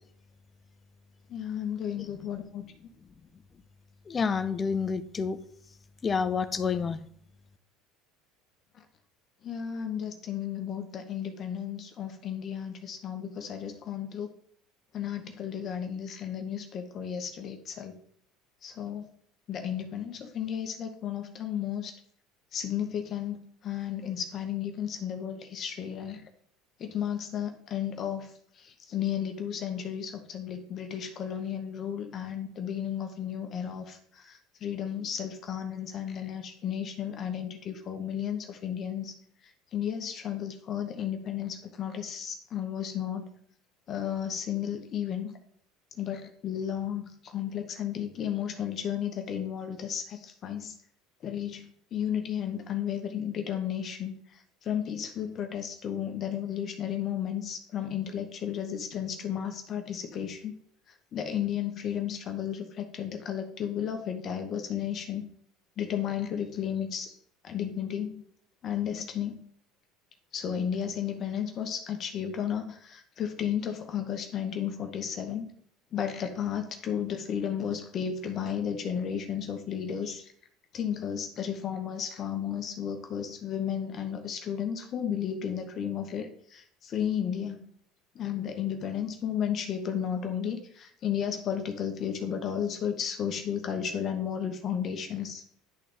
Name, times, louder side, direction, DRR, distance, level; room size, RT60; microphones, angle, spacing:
voice 1, 1.3-2.6 9.4-14.3 14.9-17.9 18.6-19.1 19.5-21.9 22.5-26.2 26.8-28.3 28.6-39.1 39.7-43.3 43.9-45.3 46.0-50.7 51.2-54.1 54.6-60.6 61.1-65.2 65.8-67.1 67.4-68.2 68.6-69.4 70.3-75.5 75.9-80.3 80.7-87.6 88.1-95.4, left 9 dB, 40° left, 5 dB, 0.9 m, -33 dB
voice 2, 4.1-5.4 6.0-7.0, left 5 dB, 25° left, 12 dB, 0.6 m, -28 dB
10.5 x 3.8 x 3.4 m, 0.62 s
supercardioid pair, 115°, 0 cm